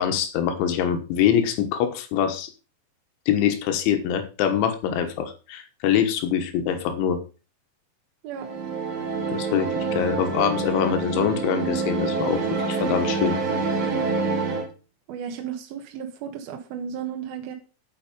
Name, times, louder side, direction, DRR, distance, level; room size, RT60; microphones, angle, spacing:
voice 1, 0.0-2.5 3.3-7.2 9.3-12.4 12.7-13.4, left 9 dB, 90° left, 7 dB, 3.7 m, -24 dB
sound 1, 8.3-14.7, right 4 dB, 45° right, 3.4 m, -27 dB
voice 2, 15.1-17.5, right 8 dB, 65° right, 4 dB, 2.8 m, -34 dB
9.1 x 8.4 x 5.4 m, 0.34 s
omnidirectional pair, 5.3 m